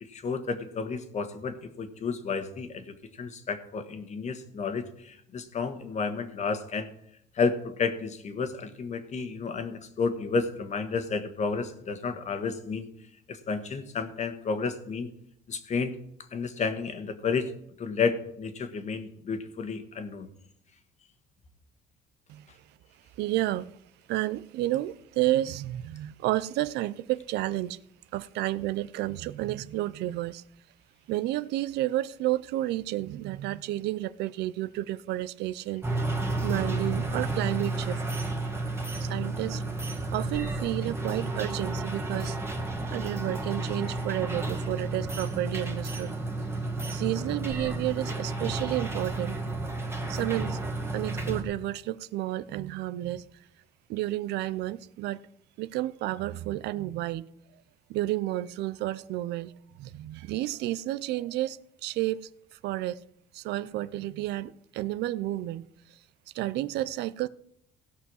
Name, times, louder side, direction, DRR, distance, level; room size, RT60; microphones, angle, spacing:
voice 1, 0.0-6.9 7.3-12.9 13.3-15.1 15.5-16.0 16.3-17.5 17.8-20.3, left 5 dB, 45° left, 1.5 m, -31 dB
voice 2, 23.2-23.7 24.1-27.8 28.1-30.4 31.1-35.8 36.4-38.0 39.0-39.6 40.1-42.4 42.9-46.2 46.9-49.4 50.1-50.6 50.9-53.2 53.9-55.2 55.6-57.3 57.9-59.5 59.8-62.3 62.6-63.0 63.3-65.7 66.3-67.3, right 15 dB, 80° right, 0.5 m, -31 dB
sound 1, 35.8-51.4, right 2 dB, 15° right, 1.9 m, -32 dB
16.5 x 5.6 x 6.3 m
cardioid pair, 110°, 17 cm